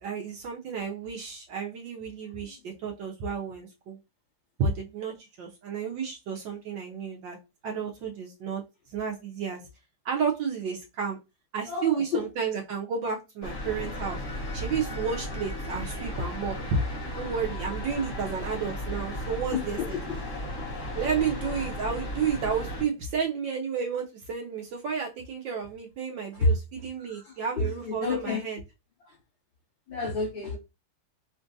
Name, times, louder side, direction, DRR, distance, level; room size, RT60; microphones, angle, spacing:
voice 1, 0.0-4.0 4.6-7.4 7.6-8.6 8.9-9.6 10.0-11.2 11.5-14.2 14.5-16.8 17.1-19.8 21.0-28.6, right 6 dB, 70° right, 0 dB, 1.2 m, -31 dB
voice 2, 11.6-12.3 19.5-20.5 26.3-26.6 27.0-28.4 29.0-29.2 29.9-30.6, left 3 dB, 65° left, -4 dB, 2.6 m, -30 dB
sound 1, 13.4-22.8, left 1 dB, 40° left, 1.6 m, -35 dB
5.1 x 2.4 x 2.5 m, 0.26 s
omnidirectional pair, 2.4 m